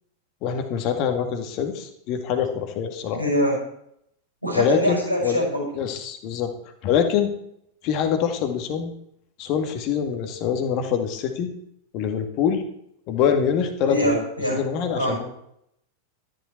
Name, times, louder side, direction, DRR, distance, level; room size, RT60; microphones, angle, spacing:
voice 1, 0.4-3.2 4.5-5.4 5.8-6.5 6.8-7.3 7.8-8.9 9.4-11.5 11.9-12.6 13.1-15.4, left 7 dB, 40° left, 7 dB, 2.0 m, -24 dB
voice 2, 3.1-3.6 4.4-5.6 13.9-14.6 14.9-15.2, equal, 90° left, -1 dB, 6.2 m, -23 dB
13.5 x 11.0 x 4.6 m, 0.73 s
figure-of-eight pair, 90°, 0 cm